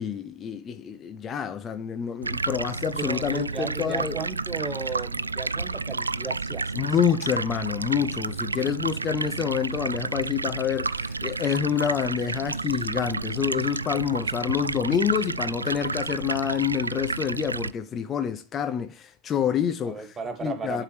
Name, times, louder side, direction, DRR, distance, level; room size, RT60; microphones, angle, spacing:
voice 1, 0.0-4.2 6.7-20.8, left 8 dB, 25° left, 0.7 m, -27 dB
Stream, 2.2-17.7, right 3 dB, 80° right, 0.3 m, -31 dB
voice 2, 3.0-6.9 19.8-20.8, right 5 dB, 15° right, 1.7 m, -35 dB
11.0 x 4.8 x 3.3 m
figure-of-eight pair, 90°, 0 cm